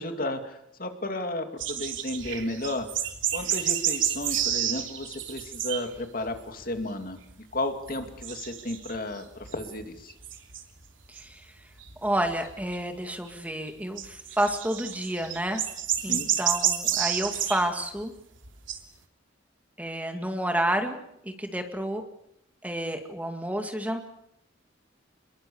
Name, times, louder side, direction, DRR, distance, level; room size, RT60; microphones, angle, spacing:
voice 1, 0.0-2.9 3.3-7.2 7.5-10.1 16.0-16.3, left 1 dB, 45° left, 6 dB, 2.4 m, -33 dB
sound 1, 1.6-6.0 6.2-6.8 7.2-7.6 7.9-10.8 11.2-11.3 11.8-12.7 14.0-17.7 18.0-18.1 18.4-18.8, right 10 dB, 75° right, 3.1 m, -30 dB
voice 2, 11.1-11.5 12.0-15.6 16.0-18.1 19.8-21.0 21.2-22.0 22.6-24.1, right 1 dB, 10° right, 5 dB, 2.1 m, -30 dB
28.5 x 22.0 x 7.1 m, 0.79 s
head